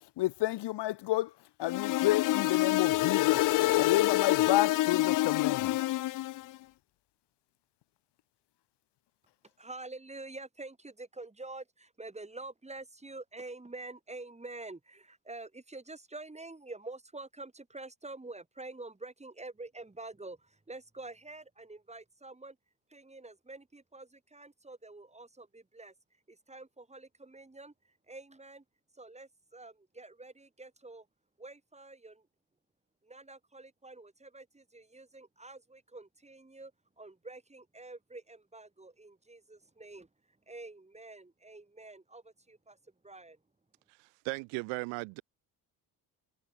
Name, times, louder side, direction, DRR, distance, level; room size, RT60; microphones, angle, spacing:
voice 1, 0.2-1.3 1.6-3.5 3.8-5.8, left 16 dB, 70° left, 1.5 m, -30 dB
sound 1, 1.6-6.4, left 16 dB, 50° left, 0.5 m, -27 dB
voice 2, 9.6-22.6 22.9-25.9 26.3-28.6 28.9-31.1 31.4-32.3 33.0-36.7 37.0-40.1 40.5-42.8 43.0-43.4, right 2 dB, 15° right, 3.3 m, -47 dB
voice 3, 44.0-45.2, right 31 dB, 85° right, 3.0 m, -37 dB
supercardioid pair, 60°, 43 cm